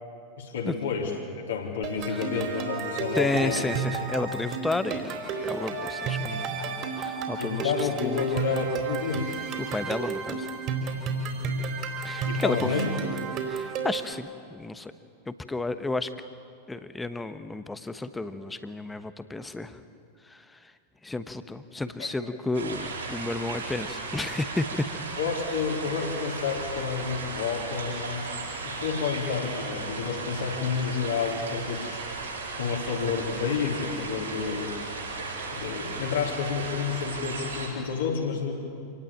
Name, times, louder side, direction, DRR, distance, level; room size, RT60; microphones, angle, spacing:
voice 1, 0.4-3.6 7.4-9.3 12.3-12.9 22.0-22.1 25.2-32.0 32.5-34.8 35.5-38.5, left 6 dB, 65° left, -2 dB, 4.1 m, -30 dB
sound 1, 1.8-14.1, right 4 dB, 40° right, 4.3 m, -32 dB
voice 2, 3.1-8.2 9.6-10.5 12.0-12.8 13.4-14.9 15.3-16.1 16.7-19.8 20.2-20.7 21.0-24.9, left 2 dB, 10° left, 11 dB, 1.3 m, -32 dB
sound 2, 22.5-37.7, right 3 dB, 70° right, 6.6 m, -36 dB
27.0 x 18.5 x 8.9 m, 2.4 s
figure-of-eight pair, 90°, 0 cm